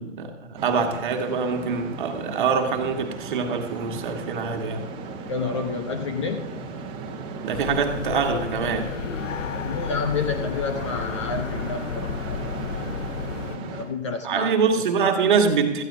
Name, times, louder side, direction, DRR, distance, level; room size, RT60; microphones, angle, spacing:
voice 1, 0.0-4.9 7.4-8.9 14.2-15.8, right 5 dB, 40° right, 1.6 m, -24 dB
sound 1, 0.6-13.9, right 4 dB, 15° right, 1.3 m, -36 dB
voice 2, 5.3-6.5 9.5-12.5 13.2-13.3 13.5-14.8, left 5 dB, 25° left, 0.7 m, -30 dB
sound 2, 7.5-13.6, left 8 dB, 75° left, 0.6 m, -33 dB
18.5 x 14.5 x 2.7 m
figure-of-eight pair, 140°, 38 cm